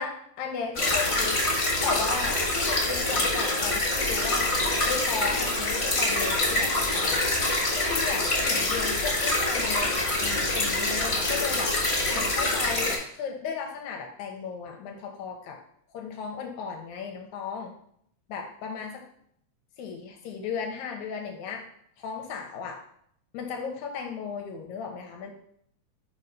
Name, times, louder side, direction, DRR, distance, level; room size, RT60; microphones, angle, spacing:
voice 1, 0.0-1.4 1.8-4.5 4.9-11.7 12.1-15.6 15.9-17.7 18.3-19.0 19.8-21.6 22.0-22.8 23.3-25.3, left 6 dB, 85° left, 2 dB, 2.1 m, -35 dB
sound 1, 0.7-13.0, left 2 dB, 30° left, 1.0 m, -25 dB
4.4 x 4.1 x 5.2 m, 0.68 s
omnidirectional pair, 3.3 m